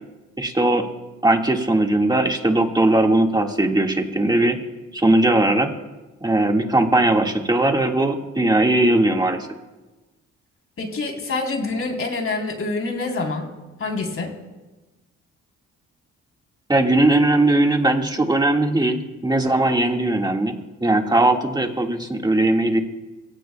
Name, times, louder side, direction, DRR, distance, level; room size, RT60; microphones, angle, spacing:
voice 1, 0.4-0.9 1.2-4.6 4.9-5.7 6.2-9.5 16.7-20.6 20.8-22.8, right 2 dB, 15° right, 2 dB, 1.8 m, -19 dB
voice 2, 10.8-13.5 13.8-14.3, left 3 dB, 45° left, 2 dB, 3.7 m, -26 dB
23.5 x 17.0 x 2.3 m, 1.2 s
cardioid pair, 90°, 30 cm